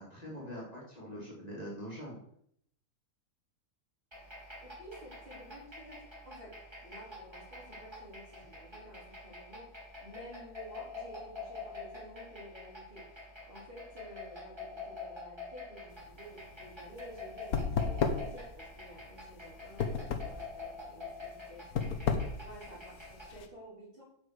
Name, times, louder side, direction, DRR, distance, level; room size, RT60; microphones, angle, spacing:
voice 1, 0.0-2.2, equal, 25° left, -5 dB, 3.5 m, -43 dB
sound 1, 4.1-23.4, left 3 dB, 15° right, 2.6 m, -47 dB
voice 2, 4.8-6.5 6.8-21.9 22.4-24.0, equal, 35° right, -4 dB, 3.9 m, -52 dB
sound 2, 15.9-23.5, left 5 dB, 75° left, 1.5 m, -34 dB
8.1 x 6.8 x 6.9 m, 0.70 s
omnidirectional pair, 1.6 m